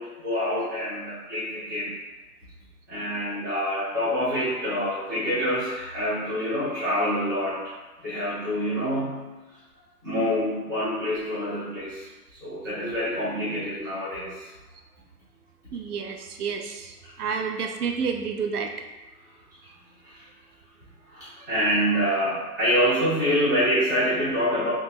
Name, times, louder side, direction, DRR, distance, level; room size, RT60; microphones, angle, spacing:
voice 1, 0.0-1.9 2.9-7.6 8.0-9.2 10.0-12.0 12.4-14.4 20.0-20.2 21.1-24.7, equal, 15° right, -13 dB, 0.5 m, -26 dB
voice 2, 15.7-18.7, right 5 dB, 70° right, 4 dB, 0.5 m, -30 dB
3.1 x 2.3 x 3.4 m, 1.1 s
hypercardioid pair, 155°, 48 cm